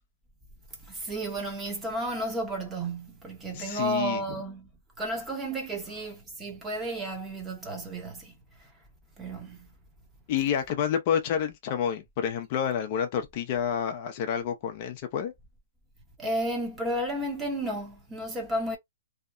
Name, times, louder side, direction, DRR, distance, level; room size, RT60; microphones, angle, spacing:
voice 1, 0.9-4.7 5.0-8.3 9.2-9.7 16.2-18.8, right 1 dB, 10° right, 0.9 m, -32 dB
voice 2, 3.5-4.4 10.3-15.3, left 8 dB, 40° left, 0.5 m, -29 dB
2.8 x 2.1 x 2.5 m
hypercardioid pair, 145°, 0 cm